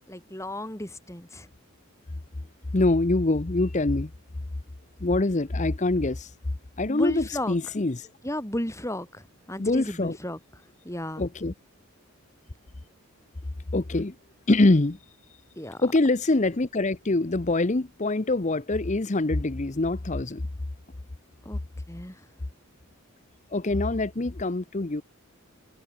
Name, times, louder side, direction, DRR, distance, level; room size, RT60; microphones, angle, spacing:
voice 1, 0.1-1.5 6.9-7.6 8.2-9.2 9.5-10.4 10.9-11.3 15.6-15.8 21.5-21.6 21.9-22.1, left 1 dB, 15° left, 5.2 m, -33 dB
voice 2, 2.7-4.1 5.0-6.3 6.8-8.1 9.6-10.2 11.2-11.5 13.7-14.1 14.5-15.0 15.8-20.4 23.5-25.0, left 2 dB, 35° left, 0.8 m, -24 dB
head